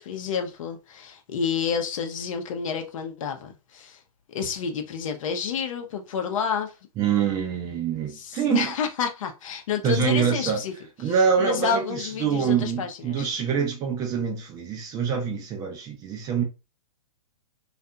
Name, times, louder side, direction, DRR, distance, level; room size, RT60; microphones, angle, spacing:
voice 1, 0.0-4.0 4.3-6.7 8.1-10.7 11.0-11.1 11.4-13.3, left 6 dB, 60° left, 0.7 m, -29 dB
voice 2, 7.0-8.7 9.8-10.6 11.0-16.4, right 7 dB, 20° right, 0.4 m, -25 dB
2.7 x 2.4 x 2.2 m
hypercardioid pair, 135°, 19 cm